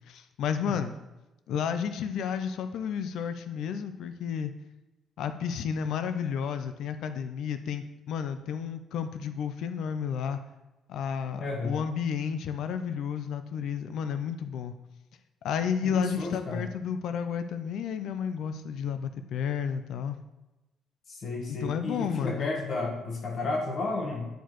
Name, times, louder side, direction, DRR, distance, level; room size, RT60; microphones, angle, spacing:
voice 1, 0.1-0.9 1.5-4.5 5.2-10.4 10.9-14.7 15.4-20.2 21.5-22.5, left 7 dB, 65° left, 9 dB, 0.4 m, -32 dB
voice 2, 11.4-11.8 15.8-16.6 21.1-24.3, left 3 dB, 40° left, 2 dB, 1.2 m, -32 dB
10.0 x 4.6 x 3.0 m, 1.0 s
cardioid pair, 155°, 0 cm